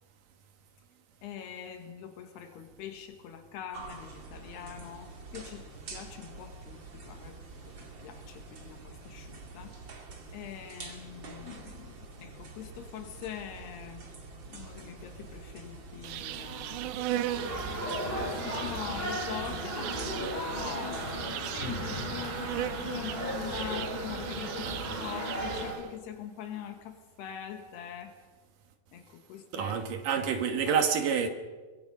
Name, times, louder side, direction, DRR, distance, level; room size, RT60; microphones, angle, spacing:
voice 1, 1.2-7.4 8.0-9.7 10.3-14.1 14.5-17.6 18.0-21.0 21.4-28.1 28.9-29.8, left 9 dB, 75° left, 3.5 m, -43 dB
sound 1, 3.7-21.5, right 3 dB, 35° right, 2.4 m, -47 dB
Insect, 16.0-25.9, right 12 dB, 85° right, 1.8 m, -38 dB
sound 2, 17.3-25.7, equal, 15° right, 7.1 m, -36 dB
voice 2, 29.5-31.3, right 7 dB, 60° right, 2.8 m, -28 dB
23.5 x 22.5 x 5.4 m
omnidirectional pair, 4.7 m